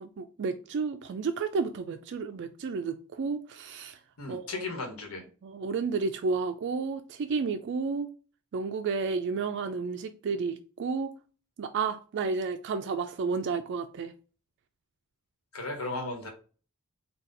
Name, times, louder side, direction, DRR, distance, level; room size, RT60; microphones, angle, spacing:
voice 1, 0.0-4.0 4.3-4.7 5.4-8.1 8.5-11.1 11.6-14.1, right 4 dB, 50° right, 0.3 m, -31 dB
voice 2, 4.2-5.2 15.5-16.3, left 3 dB, 75° left, 1.3 m, -35 dB
4.1 x 2.3 x 3.8 m
head